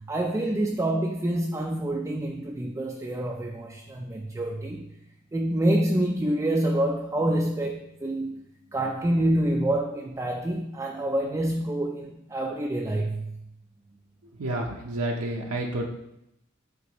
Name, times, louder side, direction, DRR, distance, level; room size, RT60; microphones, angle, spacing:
voice 1, 0.0-4.9 5.3-8.4 8.7-13.4, right 1 dB, 15° right, 1 dB, 0.3 m, -27 dB
voice 2, 14.4-15.9, right 1 dB, 75° right, -1 dB, 0.7 m, -29 dB
8.2 x 4.1 x 3.0 m, 0.83 s
head